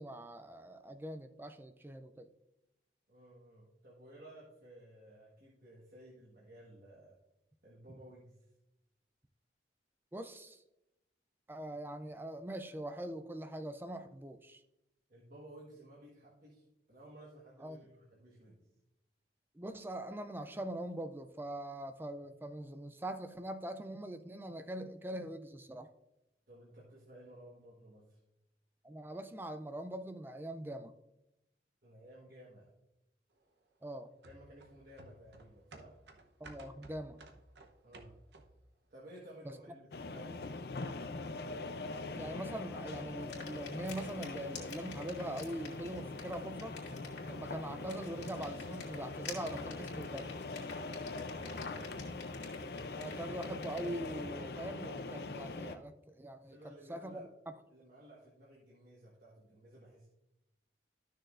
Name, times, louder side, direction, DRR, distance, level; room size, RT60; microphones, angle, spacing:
voice 1, 0.0-2.3 10.1-10.6 11.5-14.6 17.6-17.8 19.5-25.9 28.8-30.9 33.8-34.1 36.4-37.2 42.2-46.8 47.3-50.4 52.9-57.3, right 1 dB, 10° right, 0.4 m, -42 dB
voice 2, 3.1-7.2 7.6-8.4 15.1-18.6 26.5-28.2 31.8-32.7 34.2-36.0 37.8-38.1 38.9-40.5 50.9-51.9 56.4-57.3 57.7-60.1, right 1 dB, 50° right, 1.4 m, -56 dB
sound 1, 34.2-38.7 39.1-39.2, right 2 dB, 75° right, 0.9 m, -55 dB
sound 2, 39.9-55.8, left 3 dB, 60° left, 0.5 m, -42 dB
sound 3, 43.2-54.3, left 5 dB, 80° left, 2.2 m, -51 dB
12.5 x 6.4 x 2.5 m
head